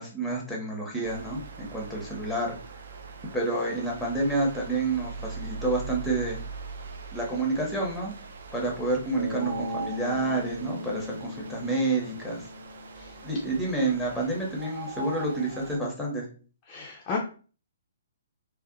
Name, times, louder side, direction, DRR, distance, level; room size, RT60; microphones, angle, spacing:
voice 1, 0.0-2.6 3.3-6.4 7.1-8.1 8.5-12.5 13.2-16.3, right 2 dB, ahead, -2 dB, 0.7 m, -29 dB
sound 1, 1.0-15.8, right 4 dB, 55° right, 0.3 m, -41 dB
Bass guitar, 9.2-13.4, left 1 dB, 70° right, 0.8 m, -38 dB
voice 2, 16.7-17.2, left 5 dB, 25° left, -2 dB, 0.4 m, -33 dB
2.5 x 2.1 x 2.4 m, 0.39 s
figure-of-eight pair, 125°, 0 cm